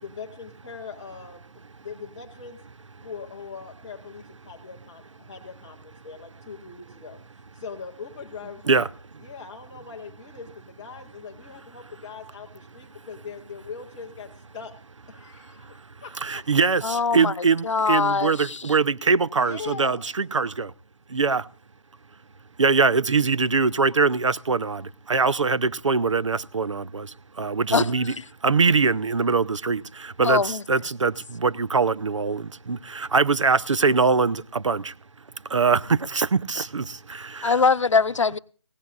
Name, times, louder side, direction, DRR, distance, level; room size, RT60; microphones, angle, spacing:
voice 1, 0.0-2.6 3.0-7.2 7.5-8.9 9.2-14.7 15.1-16.5 19.3-20.0, left 5 dB, 5° left, 0.7 m, -41 dB
voice 2, 16.2-20.7 21.1-21.4 22.6-27.1 27.4-28.1 28.4-34.9 35.5-37.6, right 4 dB, 90° right, 0.7 m, -23 dB
voice 3, 16.8-17.3 17.6-18.7 27.7-27.9 30.2-30.6 37.4-38.4, left 5 dB, 80° left, 0.7 m, -22 dB
19.0 x 17.0 x 2.5 m
hypercardioid pair, 175°, 15 cm